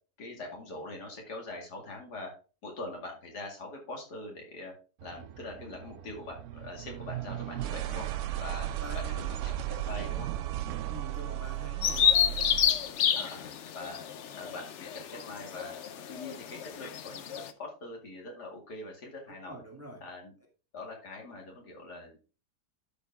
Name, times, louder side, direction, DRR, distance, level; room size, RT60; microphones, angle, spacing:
voice 1, 0.2-2.3 2.6-4.7 5.0-8.1 8.4-8.7 8.9-10.3 13.1-14.0 14.3-15.8 16.1-17.2 17.6-19.6 20.0-20.3 20.7-22.2, left 2 dB, 80° left, 1 dB, 2.9 m, -43 dB
sound 1, 5.0-12.8, right 13 dB, 70° right, 0.7 m, -36 dB
voice 2, 8.8-9.2 10.9-12.4 19.5-20.0, right 1 dB, 10° right, 1 dB, 1.7 m, -45 dB
Bird vocalization bird call bird song, 11.8-17.5, left 8 dB, 60° left, 0.8 m, -29 dB
11.5 x 4.6 x 3.5 m, 0.34 s
omnidirectional pair, 1.7 m